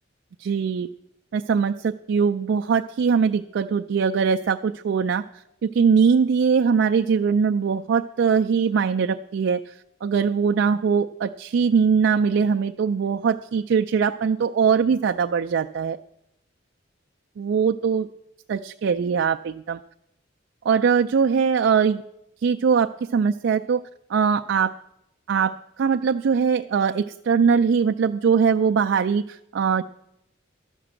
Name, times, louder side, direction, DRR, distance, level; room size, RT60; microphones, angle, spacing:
voice 1, 0.4-0.9 1.3-16.0 17.4-18.1 18.5-19.8 20.6-22.0 22.4-23.8 24.1-24.7 25.3-29.8, right 6 dB, 65° right, 5 dB, 0.3 m, -21 dB
12.0 x 6.0 x 7.6 m, 0.83 s
head